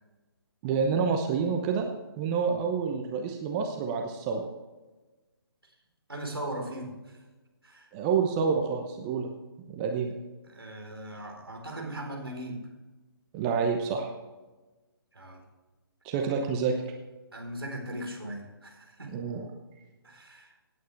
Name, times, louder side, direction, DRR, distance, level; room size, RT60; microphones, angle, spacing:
voice 1, 0.6-1.9 2.2-4.4 7.9-9.3 9.7-10.2 13.3-14.1 16.0-16.7 19.1-19.5, right 6 dB, 20° right, 3 dB, 0.9 m, -28 dB
voice 2, 6.1-7.2 7.6-8.0 10.4-12.7 15.1-15.4 17.3-19.2 20.0-20.5, right 1 dB, 75° right, 1 dB, 4.2 m, -39 dB
17.0 x 9.4 x 3.4 m, 1.2 s
figure-of-eight pair, 140°, 13 cm